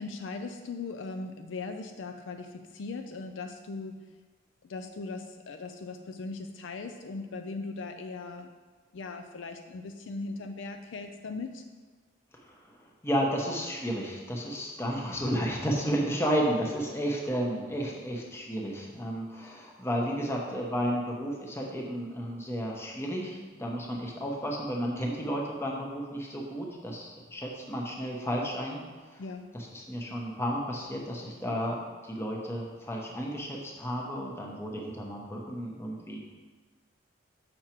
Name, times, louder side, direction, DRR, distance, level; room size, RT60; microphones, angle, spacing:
voice 1, 0.0-4.1 4.7-8.5 8.9-11.6 29.2-29.5, left 3 dB, 70° left, 6 dB, 0.4 m, -39 dB
voice 2, 13.0-28.8 29.1-29.2 29.5-36.2, equal, 15° left, -2 dB, 0.9 m, -32 dB
6.4 x 5.9 x 4.4 m, 1.4 s
head